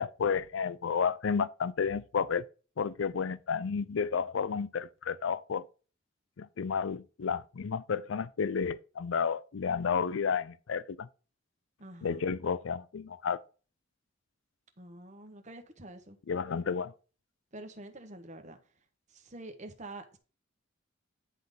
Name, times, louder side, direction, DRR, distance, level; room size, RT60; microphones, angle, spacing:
voice 1, 0.0-2.4 2.8-5.6 6.4-11.1 12.0-13.4 16.3-16.9, left 6 dB, 80° left, 0.5 m, -31 dB
voice 2, 11.8-12.2 14.8-16.2 17.5-18.6 19.1-20.2, right 2 dB, 35° right, 1.3 m, -47 dB
9.9 x 4.0 x 5.2 m
head